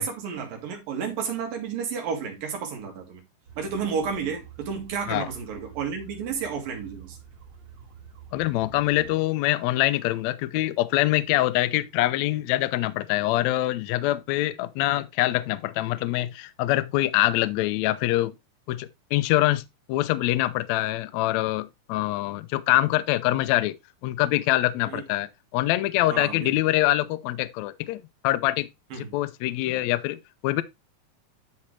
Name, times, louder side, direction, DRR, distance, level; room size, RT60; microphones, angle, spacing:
voice 1, 0.0-3.2 3.6-7.2 24.9-25.0 26.1-26.5 28.9-29.1, right 6 dB, 90° right, 3.8 m, -31 dB
sound 1, 3.5-9.1, right 7 dB, 55° right, 3.2 m, -47 dB
voice 2, 8.3-18.3 18.7-19.6 19.9-23.8 24.0-28.7 28.9-30.2 30.4-30.6, left 16 dB, 85° left, 1.6 m, -24 dB
12.0 x 4.4 x 3.1 m
omnidirectional pair, 3.9 m